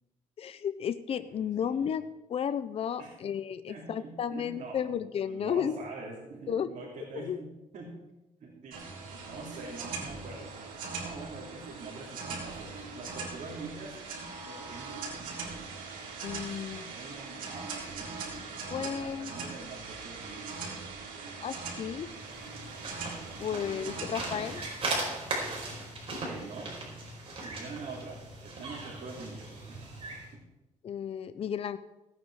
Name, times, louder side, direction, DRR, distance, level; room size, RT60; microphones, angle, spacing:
voice 1, 0.4-2.0 2.3-5.8 6.5-6.7 7.1-7.4 16.2-16.9 18.7-19.3 21.4-22.1 23.4-24.6 30.8-31.8, left 8 dB, 45° left, 12 dB, 0.6 m, -33 dB
voice 2, 1.3-1.9 3.0-3.2 3.7-8.0 8.4-8.8 9.1-10.5 11.0-14.0 14.4-15.8 16.5-18.1 18.5-21.4 23.5-24.0 26.2-26.8 27.4-29.9 30.3-30.4, right 3 dB, 55° right, -4 dB, 3.2 m, -45 dB
sound 1, 8.7-24.7, right 4 dB, 90° right, 3.5 m, -41 dB
sound 2, 22.0-30.3, right 2 dB, 40° right, 4.8 m, -38 dB
17.0 x 9.2 x 4.8 m, 0.99 s
cardioid pair, 115°, 14 cm